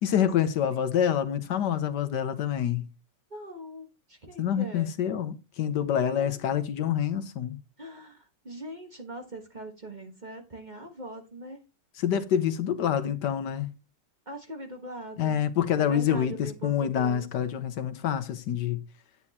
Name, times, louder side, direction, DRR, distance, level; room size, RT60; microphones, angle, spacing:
voice 1, 0.0-2.9 4.4-7.6 12.0-13.7 15.2-18.8, left 9 dB, 75° left, 1.5 m, -27 dB
voice 2, 1.0-1.4 3.3-4.9 5.9-6.3 7.8-11.6 14.2-15.4 15.8-17.3, right 1 dB, 25° right, 1.4 m, -42 dB
9.6 x 8.9 x 2.9 m
omnidirectional pair, 1.9 m